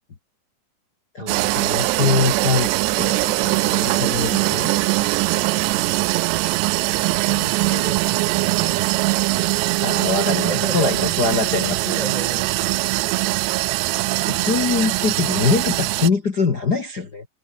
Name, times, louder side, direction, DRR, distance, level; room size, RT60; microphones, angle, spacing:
voice 1, 1.1-4.7 9.8-12.0 13.9-17.3, left 4 dB, 70° left, 0.9 m, -23 dB
sound 1, 1.3-16.1, right 20 dB, 80° right, 2.7 m, -21 dB
voice 2, 7.3-9.0 10.5-11.1 12.0-12.8, right 2 dB, 35° right, 0.6 m, -33 dB
omnidirectional pair, 5.2 m